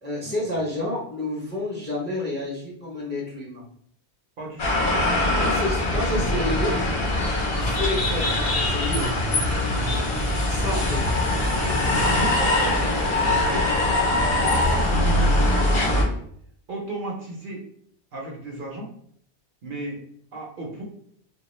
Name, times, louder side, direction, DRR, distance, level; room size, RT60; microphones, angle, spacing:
voice 1, 0.0-3.6 5.2-6.8 7.5-9.2 10.4-11.0, left 1 dB, 15° left, -4 dB, 0.5 m, -29 dB
voice 2, 4.4-4.7 9.7-10.0 11.5-13.6 14.3-16.2 16.7-17.6 18.1-18.9 19.6-20.0 20.3-20.8, right 2 dB, 60° right, -1 dB, 0.7 m, -34 dB
sound 1, 4.6-16.0, left 1 dB, 55° left, 0.8 m, -22 dB
2.2 x 2.2 x 3.0 m, 0.64 s
omnidirectional pair, 1.1 m